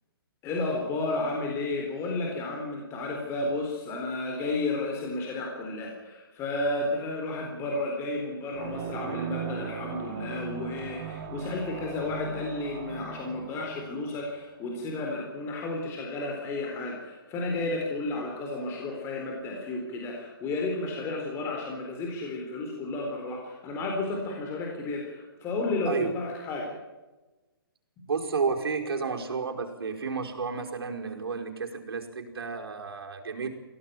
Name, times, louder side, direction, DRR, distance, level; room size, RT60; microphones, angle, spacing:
voice 1, 0.4-26.7, left 2 dB, 20° left, 0 dB, 4.1 m, -32 dB
sound 1, 8.5-14.7, right 6 dB, 30° right, 3.5 m, -38 dB
voice 2, 28.1-33.5, right 5 dB, 75° right, 2 dB, 5.2 m, -31 dB
23.0 x 16.5 x 9.4 m, 1.2 s
hypercardioid pair, 150°, 13 cm